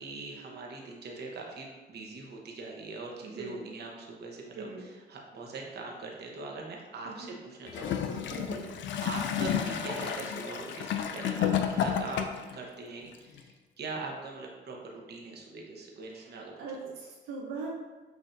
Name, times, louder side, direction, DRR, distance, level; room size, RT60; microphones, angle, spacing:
voice 1, 0.0-8.6 9.0-16.8, right 3 dB, 55° right, 0 dB, 0.9 m, -42 dB
voice 2, 3.2-3.6 4.6-4.9 7.1-7.3 8.3-8.7 16.1-16.3 16.6-17.7, right 4 dB, 90° right, -3 dB, 0.7 m, -40 dB
Gurgling / Toilet flush, 7.7-12.5 13.4-13.5, left 8 dB, 70° left, 0.4 m, -31 dB
6.0 x 2.6 x 2.6 m, 1.2 s
cardioid pair, 90°, 20 cm